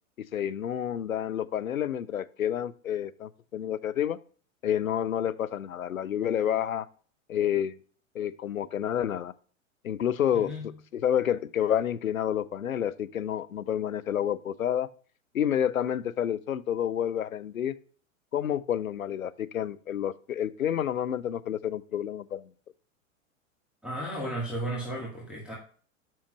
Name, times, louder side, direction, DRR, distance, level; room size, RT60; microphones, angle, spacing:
voice 1, 0.3-4.2 4.6-6.9 7.3-7.8 8.1-9.3 9.8-10.5 10.9-14.9 15.3-17.7 18.3-22.5, left 10 dB, 75° left, 13 dB, 0.6 m, -29 dB
voice 2, 10.3-10.7 23.8-25.5, right 1 dB, ahead, -4 dB, 1.9 m, -34 dB
7.6 x 5.7 x 3.0 m, 0.42 s
figure-of-eight pair, 100°, 41 cm